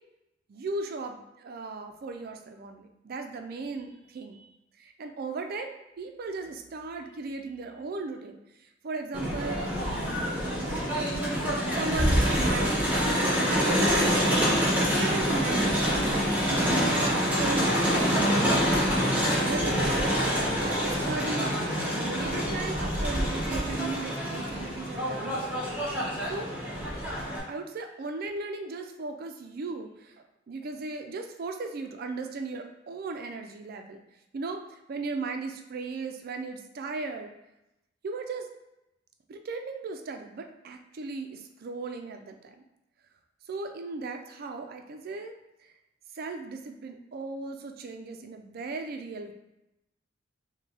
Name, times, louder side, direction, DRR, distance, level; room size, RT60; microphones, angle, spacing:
voice 1, 0.5-11.1 11.7-14.5 14.9-18.4 19.2-20.1 20.6-21.6 21.9-25.4 26.2-26.5 27.5-34.0 34.3-37.3 38.0-38.5 39.3-42.5 43.5-45.3 46.1-49.3, right 3 dB, 50° right, 5 dB, 0.4 m, -37 dB
Crowd, 9.1-27.4, equal, 10° right, 1.0 m, -26 dB
5.2 x 2.2 x 3.2 m, 0.91 s
head